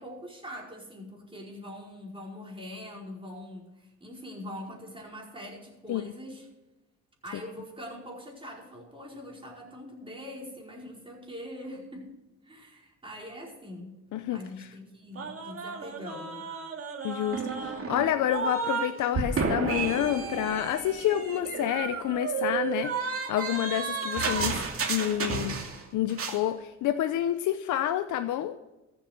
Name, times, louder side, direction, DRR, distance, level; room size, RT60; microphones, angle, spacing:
voice 1, 0.0-6.5 7.2-12.2 12.4-14.0 14.3-16.5, left 1 dB, 15° right, -2 dB, 5.0 m, -43 dB
voice 2, 14.1-14.7 17.0-24.6 24.9-25.6 25.9-28.5, left 11 dB, 80° left, 9 dB, 0.8 m, -29 dB
sound 1, 15.2-18.9 19.1-25.8 26.1-26.4, right 5 dB, 45° right, 2.5 m, -32 dB
14.5 x 7.7 x 6.6 m, 1.0 s
cardioid pair, 90°, 30 cm